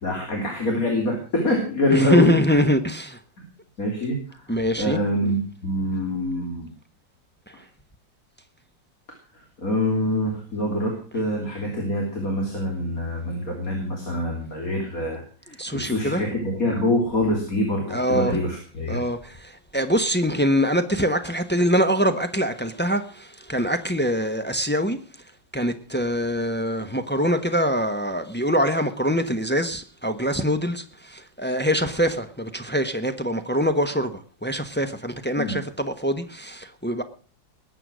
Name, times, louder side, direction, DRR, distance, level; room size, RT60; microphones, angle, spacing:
voice 1, 0.0-2.6 3.8-6.7 9.6-19.0 35.4-35.5, left 1 dB, 45° left, 3.5 m, -25 dB
voice 2, 1.9-3.2 4.5-5.0 7.5-7.6 15.5-16.2 17.9-18.4 18.9-25.0 25.5-37.0, equal, 10° left, 0.6 m, -24 dB
20.5 x 8.8 x 6.2 m
omnidirectional pair, 2.1 m